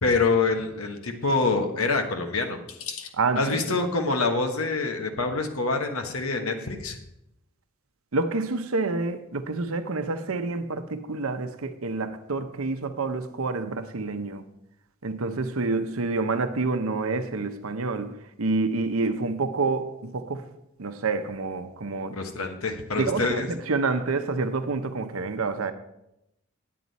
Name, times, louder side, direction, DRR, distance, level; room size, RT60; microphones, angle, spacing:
voice 1, 0.0-3.1 3.4-7.0 22.1-23.5, left 3 dB, 85° left, 1.2 m, -26 dB
voice 2, 3.2-3.8 8.1-14.4 15.0-18.1 18.4-20.4 20.8-22.2 22.9-25.7, right 3 dB, 80° right, 0.8 m, -28 dB
9.4 x 8.5 x 4.1 m
head